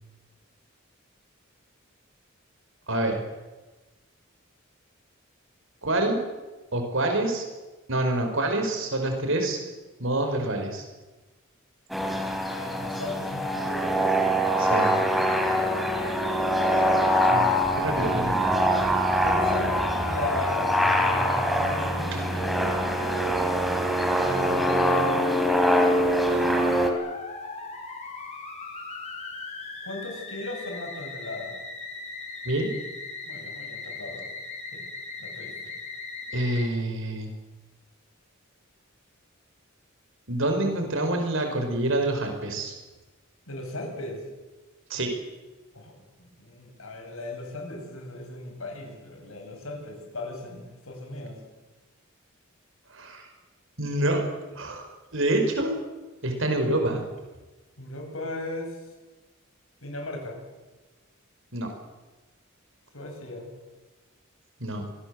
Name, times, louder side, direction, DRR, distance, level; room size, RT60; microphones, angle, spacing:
voice 1, 2.9-3.2 5.8-6.2 6.7-7.4 7.9-9.6 10.0-10.9 14.6-14.9 17.3-18.6 22.1-22.2 32.4-32.7 36.3-37.3 40.3-42.7 44.9-45.1 52.9-53.3 53.8-54.2 54.5-55.8 56.2-57.0 61.5-61.7 64.6-64.8, right 1 dB, 65° right, 4 dB, 5.6 m, -27 dB
sound 1, 11.9-26.9, equal, ahead, 3.2 m, -24 dB
voice 2, 12.5-14.1 15.9-17.3 19.2-20.7 21.4-22.9 24.1-25.3 29.8-31.6 33.3-34.3 34.7-34.8 35.2-35.7 43.5-44.2 45.7-51.4 57.8-58.9 59.8-60.4 62.9-63.5, left 2 dB, 80° left, 2 dB, 7.6 m, -37 dB
Musical instrument, 17.6-36.7, left 2 dB, 35° left, 5.6 m, -39 dB
25.5 x 20.5 x 8.0 m, 1.2 s
head